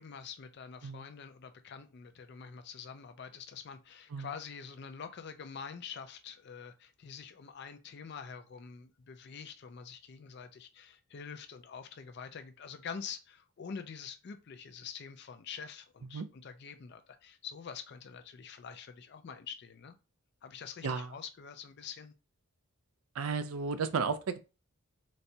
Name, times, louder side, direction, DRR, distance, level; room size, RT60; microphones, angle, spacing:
voice 1, 0.0-19.9 20.4-22.1, left 6 dB, 50° left, 0.4 m, -46 dB
voice 2, 23.2-24.4, right 5 dB, 70° right, 0.4 m, -33 dB
4.1 x 2.2 x 2.6 m
head